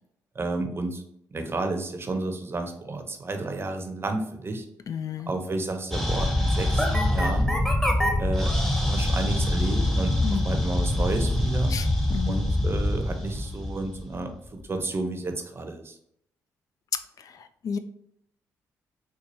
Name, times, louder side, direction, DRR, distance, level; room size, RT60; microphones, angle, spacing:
voice 1, 0.3-1.0 1.3-4.7 5.3-7.5 8.2-11.7 12.3-15.9, right 2 dB, 35° right, 5 dB, 0.7 m, -31 dB
voice 2, 4.9-5.3 10.2-10.4 11.7-12.4 17.2-17.8, left 7 dB, 55° left, 9 dB, 0.3 m, -32 dB
sound 1, 5.9-14.4, left 1 dB, 5° left, 0.8 m, -25 dB
4.4 x 2.3 x 2.7 m, 0.72 s
supercardioid pair, 60°, 7 cm